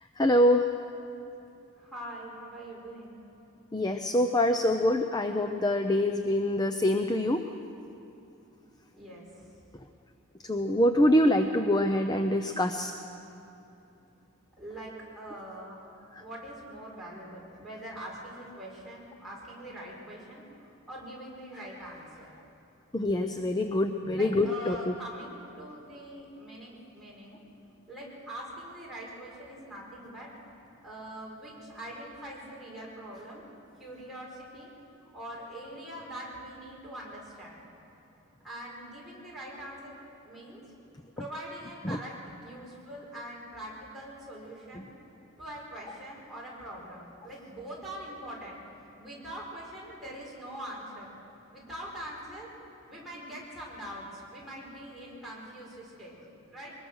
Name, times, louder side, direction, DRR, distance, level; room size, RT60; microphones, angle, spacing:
voice 1, 0.2-0.7 3.7-7.4 10.4-12.9 22.9-24.9 41.8-42.0, left 1 dB, 20° left, 6 dB, 0.6 m, -25 dB
voice 2, 1.8-3.2 8.9-9.5 14.6-15.8 16.2-22.4 24.1-27.4 27.9-30.3 30.8-33.4 33.8-34.7 35.1-37.6 38.4-40.6 41.2-42.2 42.4-44.9 45.4-48.5 49.0-51.1 51.5-52.5 52.9-56.2 56.5-56.7, right 1 dB, ahead, -6 dB, 5.0 m, -43 dB
23.0 x 20.5 x 6.4 m, 2.8 s
head